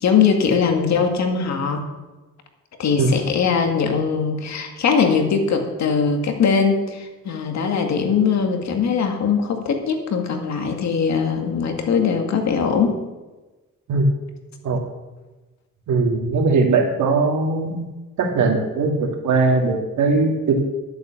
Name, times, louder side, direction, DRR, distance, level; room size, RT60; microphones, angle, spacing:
voice 1, 0.0-1.9 2.8-13.0, left 6 dB, 65° left, 4 dB, 2.1 m, -21 dB
voice 2, 15.9-17.9 18.2-20.6, right 3 dB, 75° right, 2 dB, 2.4 m, -19 dB
11.5 x 8.0 x 7.2 m, 1.2 s
cardioid pair, 90°, 30 cm